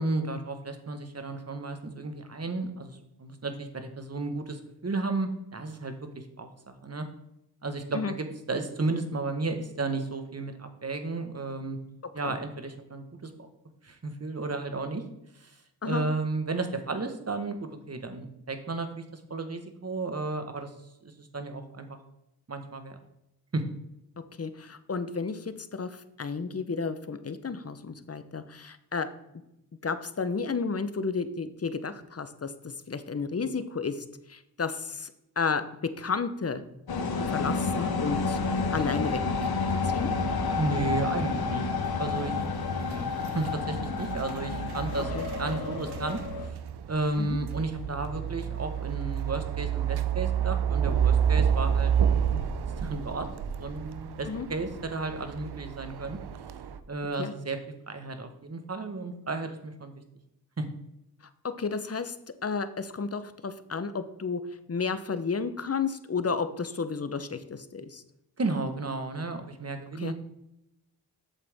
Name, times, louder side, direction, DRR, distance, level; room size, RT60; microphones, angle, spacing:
voice 1, 0.0-7.1 7.6-11.8 12.1-13.5 13.8-15.0 15.3-15.6 15.8-20.7 21.0-22.0 22.5-23.0 23.5-23.6 40.6-41.7 41.9-42.3 42.8-43.1 43.3-45.1 45.4-46.6 46.9-51.9 52.3-52.4 52.8-53.3 53.6-56.2 56.9-57.6 57.9-59.9 60.6-60.7 68.4-70.1, right 3 dB, 40° right, 7 dB, 1.4 m, -33 dB
voice 2, 24.4-29.1 29.8-35.1 35.4-35.6 36.0-36.6 37.2-38.4 38.7-39.2 39.7-40.1 45.1-45.2 47.2-47.4 54.2-54.5 57.2-57.3 61.6-62.1 62.4-64.4 64.7-68.0 70.0-70.1, left 5 dB, 35° left, 12 dB, 0.9 m, -32 dB
sound 1, 36.9-46.5, left 4 dB, 65° left, 1.2 m, -30 dB
sound 2, 38.1-56.8, right 8 dB, 70° right, 0.7 m, -31 dB
8.4 x 6.9 x 3.6 m, 0.85 s
cardioid pair, 45°, 40 cm